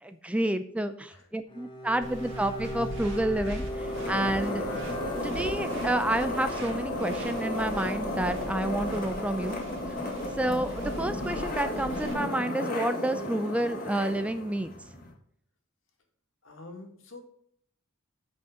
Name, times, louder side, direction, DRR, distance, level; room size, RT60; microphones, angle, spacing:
voice 1, 0.0-4.7 5.2-9.6 9.9-10.0 10.4-14.7, right 1 dB, 5° right, 10 dB, 0.4 m, -29 dB
Bowed string instrument, 1.5-5.9, equal, 25° left, 0.9 m, -39 dB
sound 1, 2.0-12.1, right 1 dB, 65° right, 2.2 m, -41 dB
sound 2, 3.6-15.1, left 1 dB, 45° left, 1.9 m, -34 dB
voice 2, 16.4-17.2, left 2 dB, 75° left, 2 dB, 2.1 m, -46 dB
8.3 x 5.3 x 5.0 m, 0.65 s
head